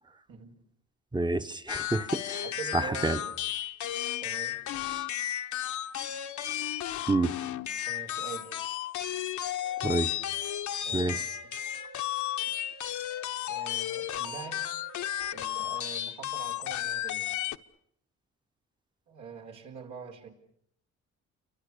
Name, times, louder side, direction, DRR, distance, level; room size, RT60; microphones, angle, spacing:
voice 1, 0.3-0.6 2.4-3.4 4.2-4.8 7.8-8.6 10.8-11.3 13.5-14.7 15.3-17.4 19.1-20.3, right 6 dB, 85° right, 4.3 m, -44 dB
voice 2, 1.1-2.4 2.7-3.2 7.1-7.3 9.8-10.1 10.9-11.2, right 2 dB, 15° right, 0.9 m, -28 dB
sound 1, 1.7-17.6, left 12 dB, 75° left, 1.0 m, -34 dB
sound 2, 9.6-10.7 11.0-15.8, right 2 dB, 55° right, 2.3 m, -53 dB
29.0 x 24.5 x 6.8 m
cardioid pair, 90°, 30 cm